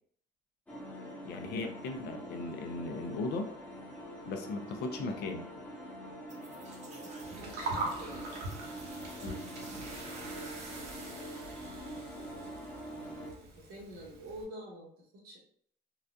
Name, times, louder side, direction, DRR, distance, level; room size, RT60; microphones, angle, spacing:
sound 1, 0.7-13.3, equal, 10° left, 0.8 m, -45 dB
voice 1, 1.2-3.5 4.2-5.4 9.2-9.5, left 3 dB, 70° left, 5 dB, 0.6 m, -37 dB
voice 2, 5.0-5.3 7.2-8.4 9.8-11.5 12.9-15.4, equal, 90° right, -4 dB, 1.3 m, -49 dB
sound 2, 6.3-12.9, right 3 dB, 45° right, 0.7 m, -51 dB
Gurgling, 7.2-14.4, right 2 dB, 70° right, 0.9 m, -43 dB
3.9 x 2.3 x 2.5 m, 0.64 s
cardioid pair, 110°, 17 cm